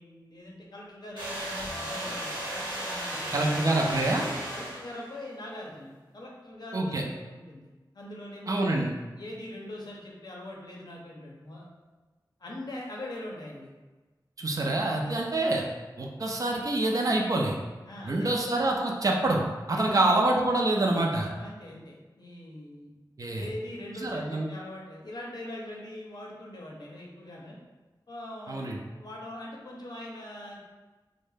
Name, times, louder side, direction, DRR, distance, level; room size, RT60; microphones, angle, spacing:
voice 1, 0.0-3.6 4.5-8.6 9.1-11.7 12.4-13.7 15.0-15.2 17.9-18.3 19.7-20.0 21.4-22.9 23.3-27.6 28.1-30.6, left 1 dB, 60° left, -3 dB, 0.6 m, -42 dB
sound 1, 1.2-5.2, right 1 dB, 75° right, 0.9 m, -35 dB
voice 2, 3.3-4.3 6.7-7.0 8.5-8.9 14.4-15.7 16.0-17.6 18.0-19.4 19.7-21.3 23.2-23.5 23.9-24.5 28.5-28.8, right 2 dB, 50° right, 0 dB, 0.4 m, -26 dB
2.2 x 2.0 x 3.2 m, 1.2 s
wide cardioid pair, 85°, 8 cm